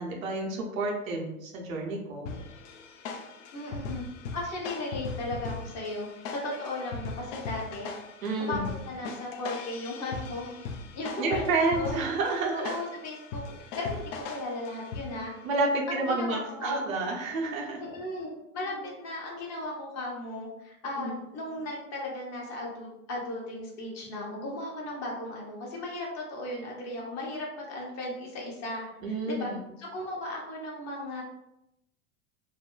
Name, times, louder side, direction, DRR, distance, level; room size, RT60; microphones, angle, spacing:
voice 1, 0.0-2.3 8.2-8.7 11.2-12.8 15.4-17.8 21.0-21.2 29.0-29.6, right 3 dB, 75° right, 0 dB, 0.7 m, -29 dB
sound 1, 2.3-15.4, left 4 dB, 60° left, 0.5 m, -39 dB
voice 2, 3.5-4.0 4.3-7.9 8.4-10.5 10.9-12.0 12.5-15.3 15.9-16.7 17.8-29.5 29.8-31.2, left 2 dB, 40° left, -2 dB, 0.9 m, -36 dB
2.6 x 2.1 x 2.3 m, 0.86 s
hypercardioid pair, 90°, 42 cm